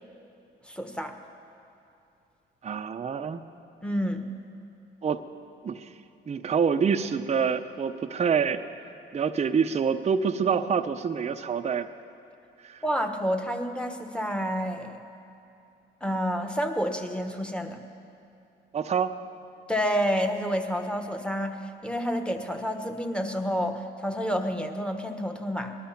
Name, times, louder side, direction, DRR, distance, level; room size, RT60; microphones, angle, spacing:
voice 1, 0.7-1.2 3.8-4.3 12.8-15.0 16.0-17.8 19.7-25.8, equal, 5° left, 5 dB, 1.3 m, -29 dB
voice 2, 2.6-3.4 5.0-5.2 5.6-5.9 6.3-8.6 9.1-11.9 12.6-12.8 18.7-19.1, right 6 dB, 35° right, 6 dB, 0.6 m, -26 dB
19.0 x 12.5 x 5.8 m, 2.7 s
cardioid pair, 90°, 20 cm